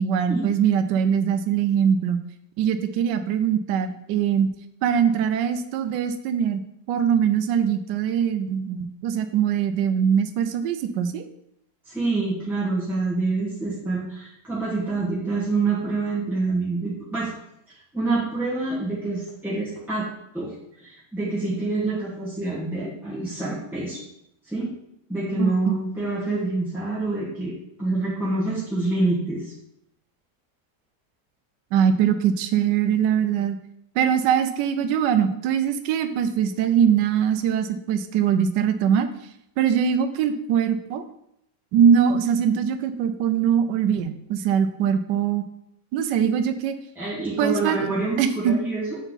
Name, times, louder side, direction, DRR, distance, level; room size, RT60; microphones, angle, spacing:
voice 1, 0.0-2.2 2.6-4.5 4.8-6.6 6.9-11.3 25.4-25.7 31.7-33.6 34.0-39.1 39.6-41.0 41.7-45.4 45.9-46.7 47.4-47.8 48.2-48.5, right 8 dB, 80° right, 9 dB, 1.2 m, -22 dB
voice 2, 11.8-17.3 17.7-20.1 20.3-20.5 20.8-24.0 24.5-24.7 25.1-29.5 46.9-49.0, right 3 dB, ahead, -9 dB, 1.5 m, -26 dB
7.8 x 4.5 x 4.0 m, 0.78 s
omnidirectional pair, 1.9 m